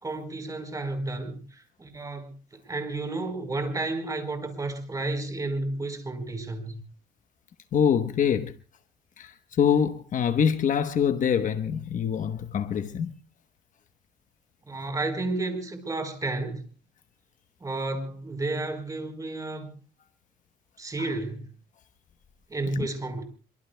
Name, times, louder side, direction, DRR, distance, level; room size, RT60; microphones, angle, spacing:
voice 1, 0.0-6.8 14.7-16.6 17.6-19.7 20.8-21.5 22.5-23.2, right 2 dB, 20° right, 4.5 m, -32 dB
voice 2, 7.7-8.5 9.2-13.1 22.8-22.9, left 8 dB, 50° left, 1.1 m, -25 dB
26.5 x 24.0 x 2.3 m
cardioid pair, 110°, 17 cm